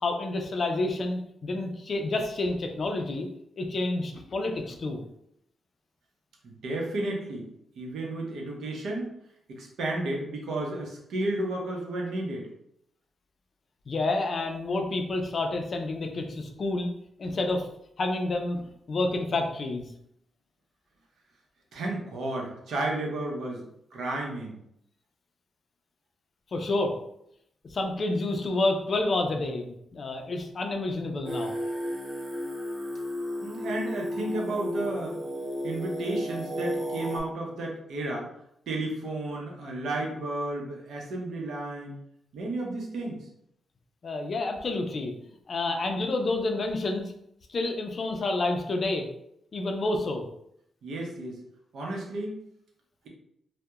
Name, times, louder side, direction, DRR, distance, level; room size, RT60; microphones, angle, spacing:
voice 1, 0.0-3.3 3.6-5.0 13.9-16.9 17.2-17.7 18.0-18.6 18.9-19.9 26.5-26.9 27.7-31.5 44.0-45.1 45.5-47.1 47.5-49.1 49.5-50.2, left 2 dB, 45° left, 3 dB, 0.4 m, -29 dB
voice 2, 6.4-7.5 7.8-9.1 9.5-12.5 21.7-24.6 33.4-35.2 35.6-38.3 38.7-42.0 42.3-43.2 50.8-51.4 51.7-52.4, right 2 dB, 80° right, -1 dB, 0.6 m, -32 dB
Singing, 31.3-37.2, equal, 15° right, 0.6 m, -33 dB
2.7 x 2.1 x 2.3 m, 0.74 s
cardioid pair, 120°, 0 cm